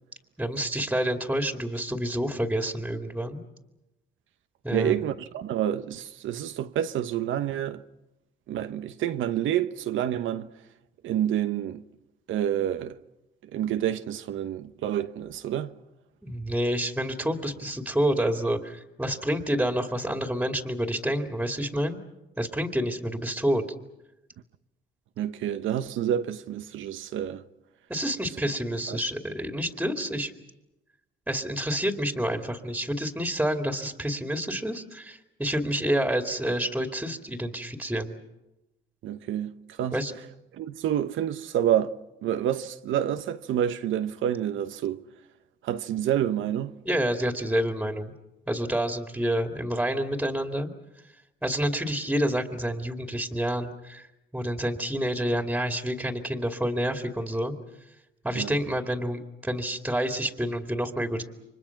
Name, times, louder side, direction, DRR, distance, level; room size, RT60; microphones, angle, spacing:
voice 1, 0.4-3.4 4.6-5.0 16.2-22.0 22.4-23.6 27.9-30.3 31.3-38.2 39.9-40.1 46.8-48.1 48.5-50.7 51.4-54.1 54.3-57.5 58.2-61.2, equal, 5° right, 2.5 m, -28 dB
voice 2, 4.7-7.8 8.5-10.5 11.0-11.8 12.3-13.0 13.5-15.7 25.2-27.4 28.9-29.0 39.0-40.0 40.5-41.9 42.2-45.0 45.6-46.7 58.3-58.5, right 10 dB, 80° right, 1.1 m, -28 dB
30.0 x 24.5 x 6.0 m
cardioid pair, 90°, 20 cm